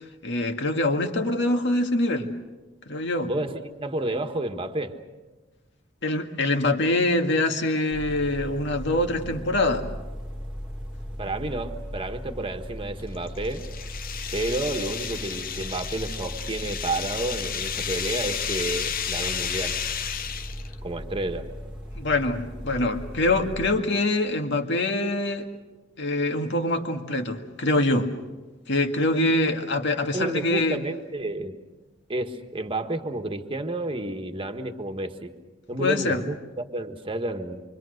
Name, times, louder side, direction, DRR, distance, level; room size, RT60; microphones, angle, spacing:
voice 1, 0.2-2.3 2.9-3.3 6.0-9.8 21.9-25.5 26.0-28.1 28.7-30.8 35.8-36.2, left 2 dB, 65° left, 5 dB, 2.0 m, -24 dB
voice 2, 3.2-4.9 11.2-13.6 14.3-19.7 20.8-21.5 29.2-29.5 30.1-31.6 32.1-35.3 35.7-37.6, right 2 dB, 25° right, 6 dB, 1.5 m, -30 dB
sound 1, 7.9-23.8, equal, 5° right, 1.9 m, -37 dB
sound 2, 13.0-20.7, left 8 dB, 50° left, 0.8 m, -32 dB
27.0 x 24.5 x 6.5 m, 1.2 s
head